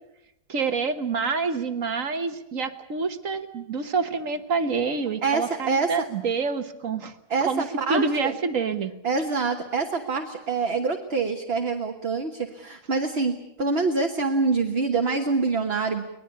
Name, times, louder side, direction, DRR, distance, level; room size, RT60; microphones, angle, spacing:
voice 1, 0.5-7.1 7.5-7.6 7.9-8.9, right 4 dB, 55° right, 10 dB, 1.5 m, -27 dB
voice 2, 5.2-6.0 7.3-8.3 9.0-16.1, right 4 dB, 40° right, 4 dB, 1.5 m, -26 dB
24.0 x 19.5 x 8.5 m, 0.86 s
omnidirectional pair, 1.7 m